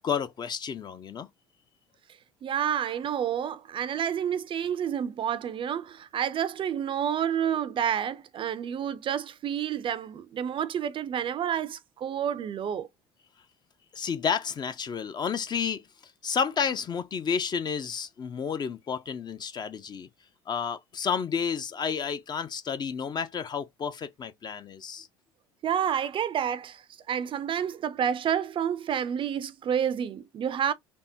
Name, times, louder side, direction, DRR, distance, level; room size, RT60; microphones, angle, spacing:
voice 1, 0.0-1.3 13.9-20.1 20.5-25.1, left 6 dB, 30° left, 0.4 m, -31 dB
voice 2, 2.4-12.9 25.6-30.7, right 9 dB, 40° right, 0.4 m, -29 dB
3.5 x 2.0 x 2.6 m
hypercardioid pair, 70°, 14 cm